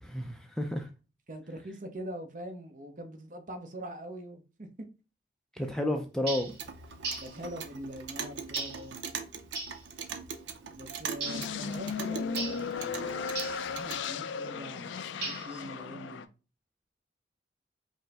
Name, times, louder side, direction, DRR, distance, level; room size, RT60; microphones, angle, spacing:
voice 1, 0.0-0.9 5.6-6.5, left 1 dB, 5° left, 0.4 m, -31 dB
voice 2, 1.3-4.9 5.6-5.8 7.2-9.0 10.7-13.2 13.6-16.2, right 1 dB, 45° right, 0.7 m, -43 dB
sound 1, 6.3-6.6 7.0-7.3 8.5-8.8 9.5-9.8 11.2-11.5 12.4-12.7 13.3-13.6 15.2-15.6, right 3 dB, 65° right, 1.6 m, -36 dB
Clock, 6.3-14.1, right 6 dB, 85° right, 0.6 m, -42 dB
sound 2, 11.2-16.3, left 5 dB, 90° left, 0.4 m, -36 dB
5.2 x 2.1 x 3.4 m
head